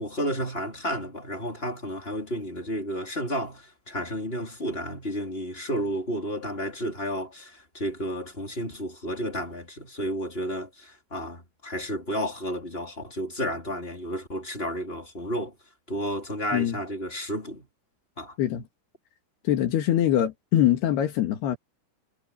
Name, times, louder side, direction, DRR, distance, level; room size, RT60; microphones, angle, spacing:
voice 1, 0.0-15.5 15.9-17.7 18.2-18.3, equal, 15° left, 3.4 m, -32 dB
voice 2, 19.4-21.6, left 11 dB, 85° left, 4.0 m, -23 dB
omnidirectional pair, 4.5 m